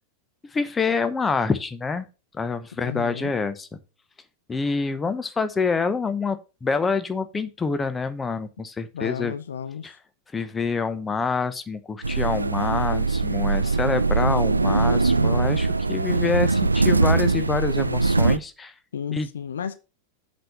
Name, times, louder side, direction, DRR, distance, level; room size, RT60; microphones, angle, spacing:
voice 1, 0.5-2.1 2.3-3.8 4.5-9.3 9.8-10.0 10.3-18.7 19.1-19.3, left 4 dB, 15° left, 0.8 m, -26 dB
voice 2, 2.8-3.3 8.9-9.9 18.9-19.8, left 8 dB, 65° left, 0.8 m, -33 dB
sound 1, 12.0-18.4, right 3 dB, 80° right, 0.4 m, -21 dB
7.7 x 4.3 x 6.7 m
figure-of-eight pair, 90°, 0 cm